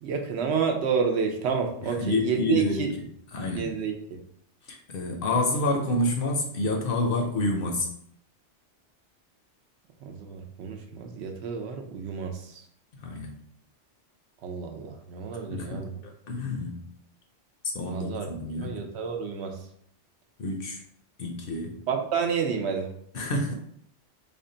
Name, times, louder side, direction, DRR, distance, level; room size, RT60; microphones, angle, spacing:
voice 1, 0.0-2.9 3.6-4.2 10.0-12.6 14.4-15.9 17.9-18.3 18.6-19.6 21.9-22.9, right 6 dB, 70° right, 3 dB, 0.8 m, -29 dB
voice 2, 1.8-3.0 3.3-3.8 4.6-7.9 12.9-13.4 15.5-16.9 17.6-18.7 20.4-20.8 21.2-21.8 23.1-23.5, left 2 dB, 60° left, 2 dB, 0.7 m, -28 dB
3.5 x 2.2 x 3.8 m, 0.66 s
omnidirectional pair, 1.2 m